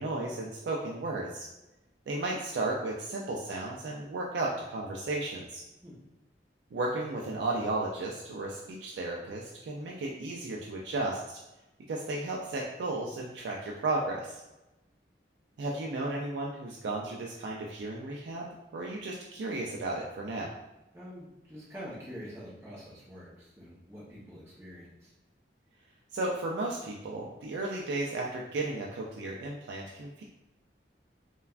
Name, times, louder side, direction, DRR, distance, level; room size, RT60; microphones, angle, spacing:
voice 1, 0.0-1.5 2.1-5.6 6.7-11.4 11.9-14.4 15.6-18.5 18.7-20.5 26.1-30.2, right 2 dB, 80° right, -2 dB, 0.3 m, -34 dB
voice 2, 20.9-25.1, equal, 15° right, -9 dB, 0.6 m, -46 dB
3.1 x 2.2 x 2.4 m, 0.97 s
head